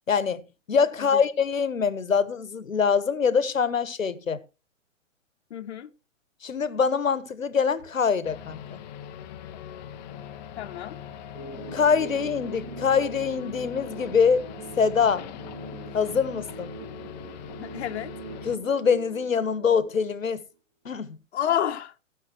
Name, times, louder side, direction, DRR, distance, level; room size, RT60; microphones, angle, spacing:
voice 1, 0.1-4.4 6.4-8.8 11.7-14.4 14.8-15.3 15.9-16.7 18.4-20.4 20.8-21.2, left 6 dB, 85° left, 1.4 m, -24 dB
voice 2, 5.5-5.9 10.5-11.0 17.6-18.1 21.3-21.9, left 10 dB, 55° left, 1.2 m, -29 dB
sound 1, 8.2-18.6, left 9 dB, 35° left, 0.9 m, -41 dB
sound 2, 11.4-20.4, right 4 dB, 50° right, 3.7 m, -42 dB
16.0 x 5.7 x 4.8 m
hypercardioid pair, 125°, 39 cm